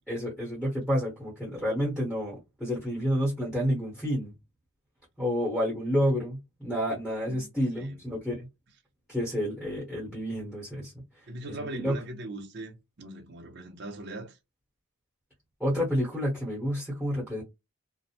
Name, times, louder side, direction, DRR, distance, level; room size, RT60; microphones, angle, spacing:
voice 1, 0.1-4.3 5.2-8.5 9.1-10.9 11.6-11.9 15.6-17.4, equal, ahead, 1.0 m, -29 dB
voice 2, 7.3-8.0 11.3-14.4, right 1 dB, 50° right, 0.7 m, -40 dB
2.5 x 2.1 x 2.8 m
head